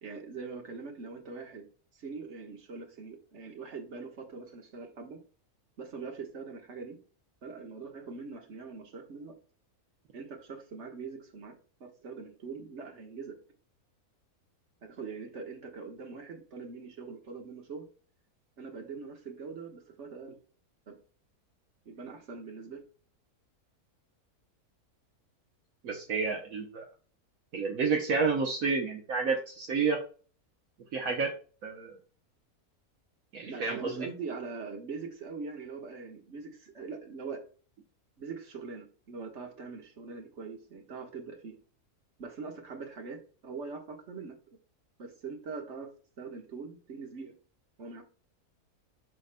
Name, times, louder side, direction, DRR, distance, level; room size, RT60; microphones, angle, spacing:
voice 1, 0.0-1.7 1.9-5.2 5.8-7.0 7.4-9.4 10.1-11.5 11.8-13.4 14.8-17.9 18.6-20.4 20.9-21.0 21.8-22.8 33.5-37.4 38.2-41.6 42.2-44.4 45.0-45.9 46.2-47.3 47.8-48.0, right 4 dB, 50° right, 3 dB, 1.6 m, -42 dB
voice 2, 25.8-26.9 27.5-30.0 30.9-31.3 31.6-32.0 33.3-34.1, right 4 dB, 65° right, 1 dB, 1.4 m, -30 dB
11.5 x 4.0 x 2.2 m, 0.39 s
omnidirectional pair, 1.6 m